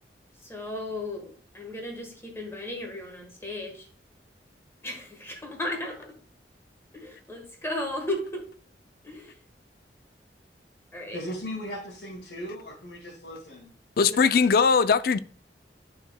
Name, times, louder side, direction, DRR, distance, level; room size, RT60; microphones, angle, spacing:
voice 1, 0.3-3.9 4.8-6.2 6.9-8.5 9.0-9.4 10.9-11.2 14.1-14.4, left 1 dB, 15° left, 1.4 m, -35 dB
voice 2, 11.1-13.7, equal, 75° left, 2.0 m, -37 dB
voice 3, 14.0-15.2, left 5 dB, 55° left, 0.4 m, -20 dB
11.0 x 4.8 x 2.3 m
head